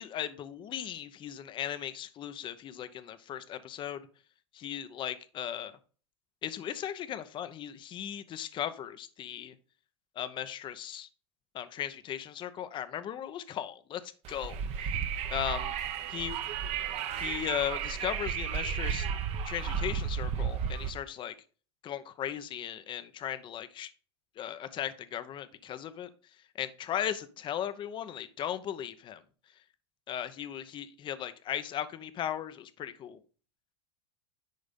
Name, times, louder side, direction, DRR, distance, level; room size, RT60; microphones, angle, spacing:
voice 1, 0.0-4.1 4.5-5.7 6.4-9.5 10.2-11.1 11.5-14.0 14.3-15.0 15.3-15.7 16.1-16.4 17.2-19.1 19.4-21.3 21.8-23.9 24.4-26.1 26.5-29.2 30.1-33.2, left 10 dB, 35° left, 13 dB, 0.9 m, -37 dB
Wind, 14.2-20.9, right 7 dB, 45° right, 1.2 m, -33 dB
10.5 x 3.9 x 5.4 m, 0.39 s
supercardioid pair, 115°, 15 cm